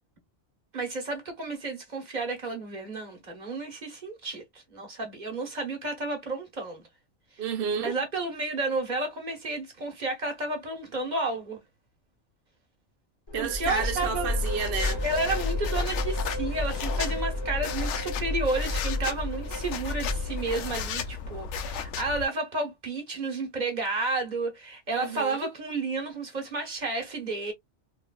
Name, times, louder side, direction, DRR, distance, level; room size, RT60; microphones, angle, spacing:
voice 1, 0.7-4.4 4.7-6.8 7.8-11.6 13.4-14.3 15.0-27.5, right 3 dB, 40° right, 1.2 m, -31 dB
voice 2, 7.4-8.0 13.3-15.0 24.9-25.5, right 6 dB, 55° right, 0.9 m, -31 dB
sound 1, 13.3-21.1, left 2 dB, 25° left, 0.8 m, -31 dB
sound 2, 13.7-22.3, left 6 dB, 75° left, 0.9 m, -36 dB
3.3 x 2.4 x 2.3 m
omnidirectional pair, 1.2 m